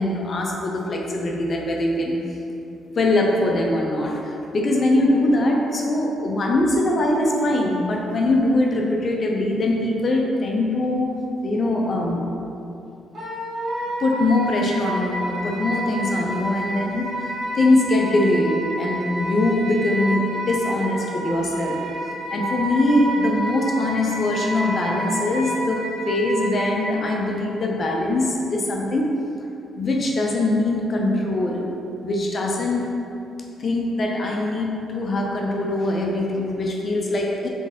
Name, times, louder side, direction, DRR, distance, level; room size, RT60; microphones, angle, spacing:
voice 1, 0.0-2.2 3.0-12.3 14.0-21.8 22.3-29.1 29.8-31.6 32.0-32.9 33.6-37.5, left 1 dB, 45° left, 0 dB, 0.6 m, -22 dB
Wind instrument woodwind instrument, 13.1-26.9, right 1 dB, 45° right, 1.1 m, -29 dB
3.9 x 3.2 x 3.6 m, 2.7 s
cardioid pair, 90°, 0 cm